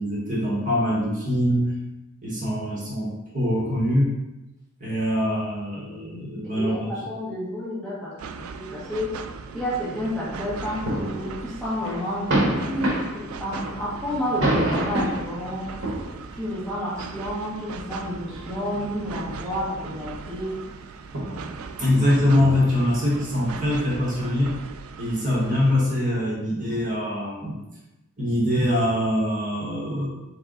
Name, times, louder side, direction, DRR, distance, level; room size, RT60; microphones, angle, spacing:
voice 1, 0.0-1.7 2.2-4.1 4.8-6.9 21.8-24.5 25.0-27.6 28.2-30.1, left 1 dB, 40° right, -6 dB, 1.4 m, -23 dB
voice 2, 6.4-9.1 9.5-15.8 16.3-20.6 26.5-26.8, equal, 5° left, -8 dB, 1.1 m, -30 dB
sound 1, 8.2-25.7, right 5 dB, 80° right, 0.3 m, -39 dB
sound 2, 10.4-11.5 11.8-15.3 15.8-16.4 17.3-17.4 18.2-19.4 19.8-20.1 20.4-20.5 21.1-23.5, right 1 dB, 60° right, 1.0 m, -28 dB
3.8 x 3.4 x 3.7 m, 0.97 s
head